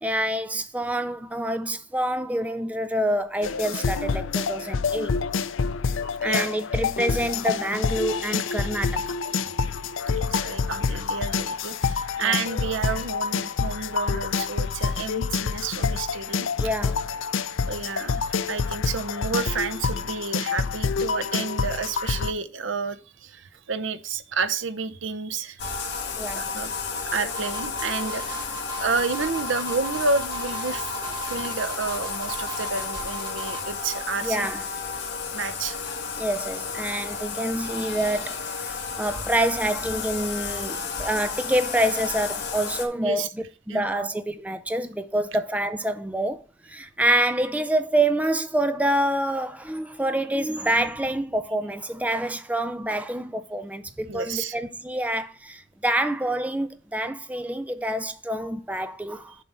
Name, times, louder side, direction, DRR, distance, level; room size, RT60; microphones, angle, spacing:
voice 1, 0.0-5.2 6.2-9.0 12.2-12.4 16.6-17.1 26.1-26.4 31.0-31.1 34.2-34.7 36.2-43.3 43.7-59.3, right 1 dB, 5° right, 0.5 m, -27 dB
sound 1, 3.4-22.3, left 5 dB, 80° left, 0.5 m, -27 dB
voice 2, 10.1-16.5 17.7-25.8 26.3-26.7 27.1-28.5 28.8-30.9 31.2-34.5 35.3-35.8 43.0-43.3 43.7-44.1 54.1-54.6, right 4 dB, 75° right, 0.8 m, -30 dB
Bathtub (filling or washing), 25.6-42.9, left 5 dB, 60° left, 1.7 m, -32 dB
sound 2, 27.3-33.7, right 2 dB, 25° right, 3.2 m, -37 dB
7.0 x 4.7 x 5.4 m
head